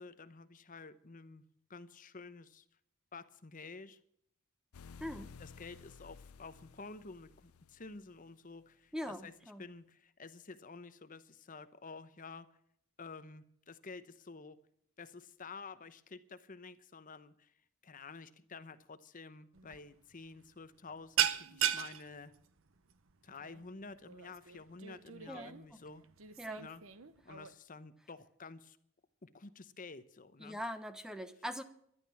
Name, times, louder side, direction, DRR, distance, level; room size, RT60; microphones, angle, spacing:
voice 1, 0.0-1.4 1.7-2.6 3.1-4.0 5.4-12.5 13.0-14.6 15.0-17.5 17.8-22.3 23.2-26.0 26.6-26.8 27.2-28.8 29.2-30.6, left 4 dB, 35° left, 0.8 m, -50 dB
sound 1, 4.7-8.3, left 5 dB, 80° left, 0.6 m, -55 dB
voice 2, 5.0-5.3 8.9-9.6 25.3-25.8 26.4-26.7 30.4-31.6, equal, 5° right, 1.0 m, -42 dB
sound 2, 19.5-19.8 20.1-20.4 20.6-27.5, right 10 dB, 65° right, 0.8 m, -37 dB
12.5 x 11.5 x 7.0 m
head